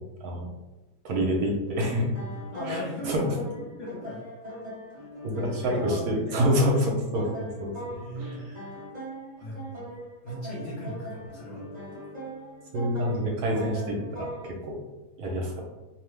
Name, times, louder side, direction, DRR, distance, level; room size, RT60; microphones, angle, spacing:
voice 1, 1.0-2.1 2.7-2.8 3.0-3.2 5.2-7.7 8.2-8.5 12.7-14.8 15.2-15.6, equal, 65° right, 0 dB, 1.0 m, -27 dB
sound 1, 1.8-14.5, right 1 dB, 30° right, 0.8 m, -41 dB
voice 2, 2.5-3.3 3.7-4.2 5.6-7.2 7.9-8.4 9.4-9.7 10.2-11.7, left 1 dB, 60° left, -5 dB, 0.9 m, -37 dB
2.8 x 2.2 x 3.2 m, 1.1 s
omnidirectional pair, 1.9 m